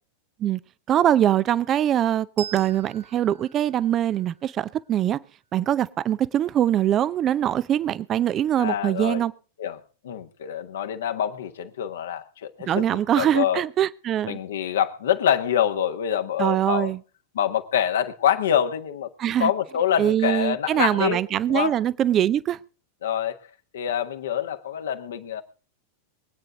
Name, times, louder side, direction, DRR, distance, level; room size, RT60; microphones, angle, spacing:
voice 1, 0.9-5.2 5.5-9.3 12.7-14.4 16.4-17.0 19.2-19.5 20.0-22.6, right 11 dB, 30° right, 0.6 m, -23 dB
Bell, 2.4-5.4, right 10 dB, 65° right, 1.1 m, -43 dB
voice 2, 8.6-9.2 9.6-13.6 14.3-16.9 17.3-19.1 19.4-21.2 21.5-21.8 23.0-23.4 23.7-25.4, left 9 dB, 60° left, 1.4 m, -26 dB
23.0 x 9.1 x 3.8 m
figure-of-eight pair, 90°, 0 cm